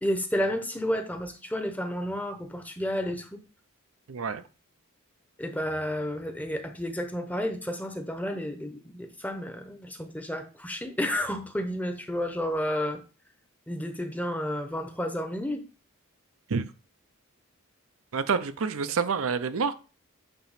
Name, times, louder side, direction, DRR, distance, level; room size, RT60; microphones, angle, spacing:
voice 1, 0.0-3.4 5.4-13.0 13.7-15.6, equal, 5° left, 6 dB, 0.8 m, -31 dB
voice 2, 4.1-4.4 16.5-16.6 18.1-19.7, right 5 dB, 70° right, 11 dB, 0.6 m, -28 dB
8.9 x 3.0 x 5.7 m, 0.33 s
head